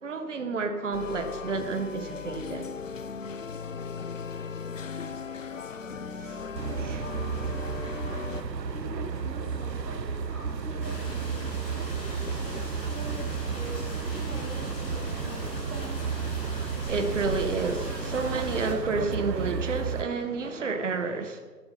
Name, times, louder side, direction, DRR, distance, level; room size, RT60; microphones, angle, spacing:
voice 1, 0.0-2.7 6.2-6.5 6.8-7.0 15.7-16.1 16.8-21.4, right 4 dB, 45° right, 1.7 m, -30 dB
sound 1, 0.9-8.4, left 5 dB, 50° left, 0.9 m, -37 dB
voice 2, 6.5-7.2 8.4-15.6, left 1 dB, 5° left, 1.2 m, -44 dB
sound 2, 6.5-20.0, right 6 dB, 85° right, 1.3 m, -32 dB
sound 3, 10.8-18.7, left 1 dB, 35° left, 5.7 m, -40 dB
13.0 x 12.5 x 5.7 m
hypercardioid pair, 170°, 49 cm